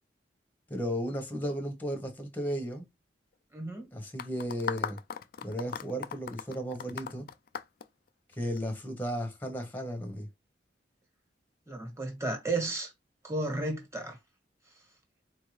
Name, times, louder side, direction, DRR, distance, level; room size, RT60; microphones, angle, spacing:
voice 1, 0.7-2.8 3.9-5.0 5.4-7.3 8.3-10.3, equal, 10° left, 0.9 m, -34 dB
voice 2, 3.5-3.9 11.7-12.9 13.2-14.2, right 2 dB, 15° right, 1.5 m, -33 dB
sound 1, 4.2-8.6, left 7 dB, 55° left, 0.4 m, -38 dB
4.3 x 2.6 x 3.1 m
head